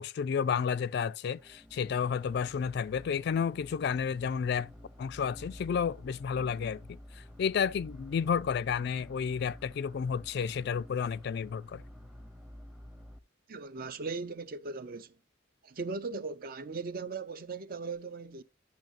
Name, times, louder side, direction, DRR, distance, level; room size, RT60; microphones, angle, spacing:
voice 1, 0.0-4.7 5.0-11.8, left 7 dB, 55° left, 0.3 m, -31 dB
sound 1, 1.3-13.2, left 1 dB, ahead, 0.6 m, -51 dB
voice 2, 13.5-15.1 15.6-18.4, right 4 dB, 45° right, 0.6 m, -38 dB
10.5 x 6.3 x 2.5 m
head